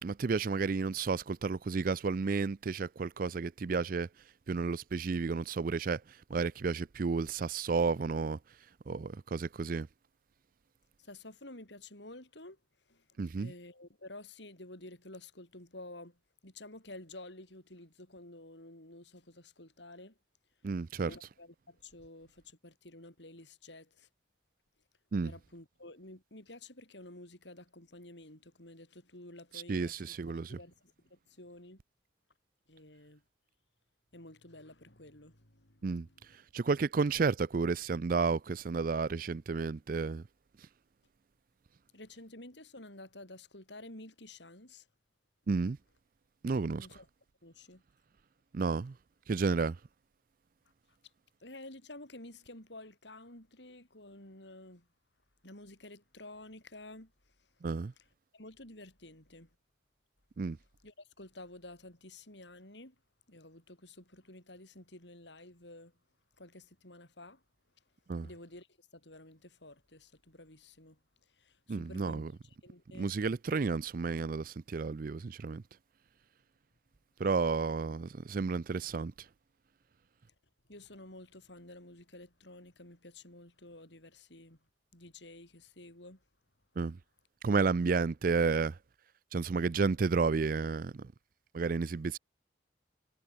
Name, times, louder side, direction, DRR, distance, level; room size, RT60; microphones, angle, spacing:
voice 1, 0.0-4.1 4.5-8.4 8.9-9.9 13.2-13.5 20.6-21.1 25.1-25.3 29.7-30.6 35.8-36.1 36.5-40.2 45.5-45.8 46.4-46.9 48.5-48.9 49.3-49.8 57.6-57.9 60.4-60.6 68.1-68.3 71.7-72.3 73.0-75.6 77.2-79.1 86.8-87.0 87.4-88.8 89.3-91.1 91.5-92.2, right 4 dB, 50° right, 0.4 m, -31 dB
voice 2, 11.0-12.6 12.9-20.2 20.9-24.1 25.2-31.8 32.7-33.2 34.1-36.4 41.9-44.9 46.7-47.1 47.4-47.8 51.4-54.9 55.4-57.3 58.3-59.6 60.8-63.0 63.3-65.9 66.4-67.4 68.2-73.1 80.7-84.6 84.9-86.2, left 2 dB, 70° left, 7.5 m, -51 dB
head